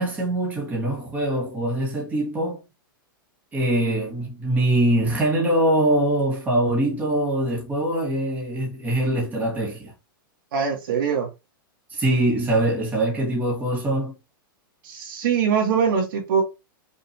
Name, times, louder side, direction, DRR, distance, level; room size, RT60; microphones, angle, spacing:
voice 1, 0.0-2.6 3.5-9.9 11.9-14.1, right 1 dB, 15° right, 1.6 m, -23 dB
voice 2, 10.5-11.3 14.8-16.4, right 7 dB, 65° right, 1.9 m, -22 dB
5.5 x 2.9 x 2.7 m
supercardioid pair, 155°, 12 cm